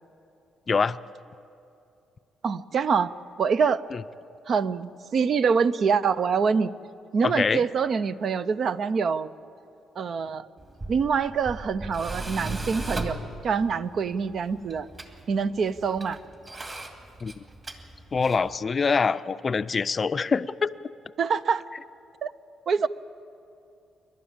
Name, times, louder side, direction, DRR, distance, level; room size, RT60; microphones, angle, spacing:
voice 1, 2.4-3.8 4.5-6.7 7.1-9.3 10.0-10.5 10.9-13.2 13.4-14.9 15.3-16.2 21.2-21.6 22.2-22.3 22.7-22.9, right 5 dB, 55° right, 13 dB, 0.6 m, -25 dB
voice 2, 7.2-7.6 17.2-17.3 18.1-20.7, left 5 dB, 35° left, 14 dB, 0.4 m, -24 dB
Tools, 10.6-18.5, right 2 dB, 30° right, 2.3 m, -38 dB
27.5 x 12.0 x 8.7 m, 2.6 s
cardioid pair, 90°, 0 cm